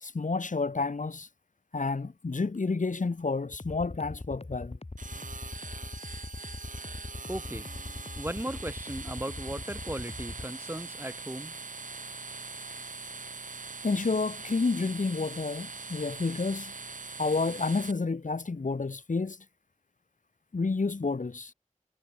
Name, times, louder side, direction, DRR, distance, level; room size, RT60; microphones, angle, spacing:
voice 1, 0.0-1.3 1.7-4.8 13.8-16.7 17.2-19.4 20.5-21.5, left 3 dB, 75° left, 2.1 m, -30 dB
sound 1, 3.5-10.5, left 2 dB, 50° left, 5.6 m, -41 dB
sound 2, 5.0-17.9, right 4 dB, 80° right, 2.1 m, -42 dB
voice 2, 7.3-7.7 8.2-11.6, right 1 dB, 15° right, 1.6 m, -37 dB
wide cardioid pair, 45°, 13 cm